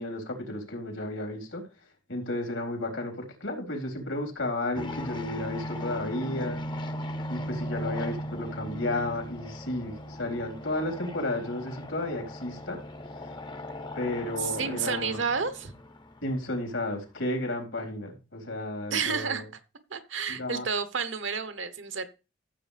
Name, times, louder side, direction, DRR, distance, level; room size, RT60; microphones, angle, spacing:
voice 1, 0.0-1.6 2.1-6.6 7.3-12.8 14.0-15.2 16.2-19.5 20.3-20.7, left 1 dB, 80° left, 4.0 m, -33 dB
sound 1, 4.8-16.8, left 1 dB, 25° left, 0.7 m, -38 dB
voice 2, 14.4-15.7 18.9-19.4 19.9-22.1, right 6 dB, 70° right, 1.0 m, -30 dB
14.5 x 7.4 x 3.4 m
head